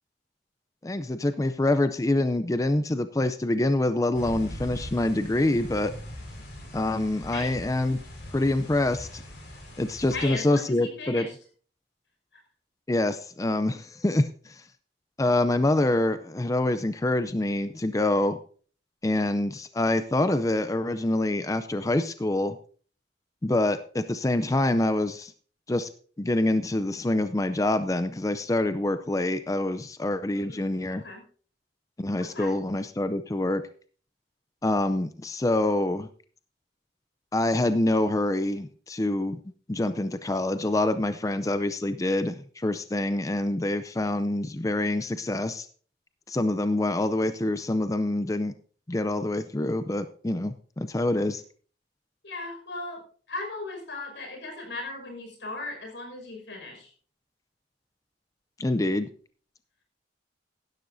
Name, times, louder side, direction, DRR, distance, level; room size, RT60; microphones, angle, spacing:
voice 1, 0.8-5.9 6.7-8.0 8.3-9.2 9.8-11.3 12.9-14.7 15.2-18.4 19.0-22.6 23.4-25.3 25.7-25.9 26.2-31.0 32.0-33.6 34.6-36.1 37.3-39.4 39.7-45.7 46.3-48.5 48.9-51.4 58.6-59.1, left 1 dB, 20° left, 11 dB, 0.5 m, -26 dB
sound 1, 4.1-10.3, equal, 65° left, 4.1 m, -41 dB
voice 2, 10.1-11.4 30.3-31.2 32.2-32.5 52.2-53.0 53.3-56.9, left 2 dB, 85° left, 2 dB, 5.6 m, -37 dB
16.5 x 12.0 x 2.7 m, 0.43 s
head